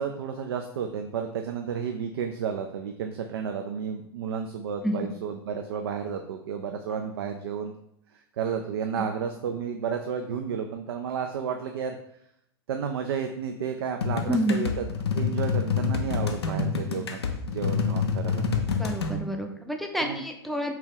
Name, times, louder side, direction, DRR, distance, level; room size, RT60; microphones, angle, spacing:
voice 1, 0.0-7.8 8.4-12.0 12.7-14.8 15.1-18.4 20.0-20.2, right 7 dB, 70° right, 5 dB, 0.4 m, -32 dB
sound 1, 14.0-19.2, left 5 dB, 90° left, 0.5 m, -27 dB
voice 2, 14.3-14.7 18.8-20.7, equal, ahead, 3 dB, 0.5 m, -28 dB
3.0 x 2.8 x 3.7 m, 0.72 s
hypercardioid pair, 95°, 13 cm